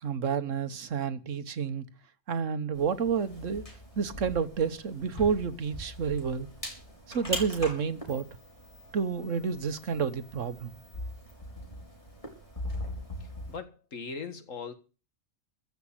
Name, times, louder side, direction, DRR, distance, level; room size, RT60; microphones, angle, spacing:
voice 1, 0.0-1.8 2.3-3.6 3.9-6.5 7.1-8.3 8.9-10.7, right 6 dB, 75° right, 1.5 m, -30 dB
sound 1, 2.7-13.6, equal, 25° left, 4.1 m, -41 dB
voice 2, 13.5-14.7, left 5 dB, 85° left, 2.1 m, -39 dB
15.0 x 6.0 x 9.8 m
omnidirectional pair, 1.3 m